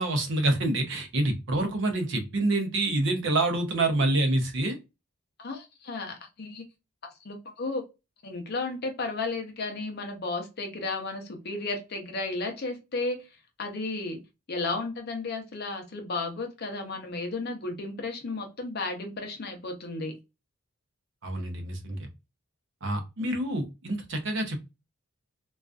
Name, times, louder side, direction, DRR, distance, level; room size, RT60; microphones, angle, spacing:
voice 1, 0.0-4.8 21.2-22.1 22.8-24.6, right 2 dB, 55° right, 5 dB, 0.6 m, -27 dB
voice 2, 5.4-6.6 7.2-7.8 8.2-13.3 13.6-14.2 14.5-20.1, left 3 dB, 45° left, 4 dB, 0.6 m, -33 dB
2.4 x 2.3 x 2.3 m, 0.25 s
head